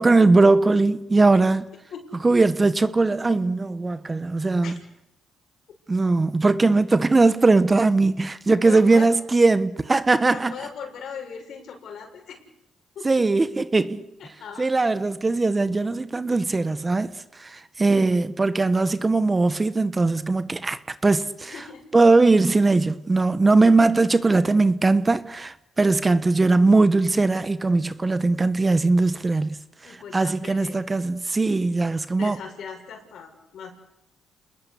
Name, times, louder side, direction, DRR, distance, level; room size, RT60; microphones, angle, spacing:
voice 1, 0.0-1.7 2.2-4.8 5.9-10.5 13.0-14.0 14.6-21.6 21.9-29.6 30.1-32.4, right 3 dB, 25° right, 1.2 m, -20 dB
voice 2, 8.6-9.1 10.3-12.4 12.9-13.1 14.2-14.7 21.4-21.8 29.8-30.9 32.2-33.7, left 7 dB, 70° left, 6.9 m, -38 dB
30.0 x 20.5 x 8.4 m
cardioid pair, 90°, 0 cm